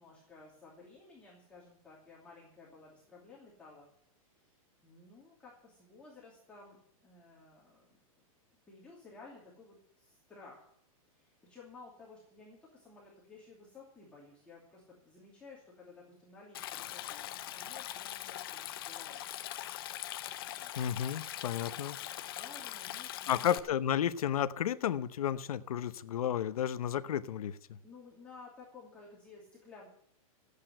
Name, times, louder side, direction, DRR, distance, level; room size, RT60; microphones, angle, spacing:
voice 1, 0.0-3.9 4.3-4.5 4.8-8.0 8.7-10.7 11.1-19.3 20.6-20.7 21.6-23.5 27.8-29.9, left 3 dB, 5° left, -6 dB, 2.7 m, -55 dB
Stream, 16.5-23.6, left 13 dB, 40° left, 0.7 m, -42 dB
voice 2, 20.8-22.0 23.3-27.8, left 9 dB, 80° left, 12 dB, 1.0 m, -32 dB
13.0 x 8.4 x 9.1 m, 0.65 s
supercardioid pair, 175°, 18 cm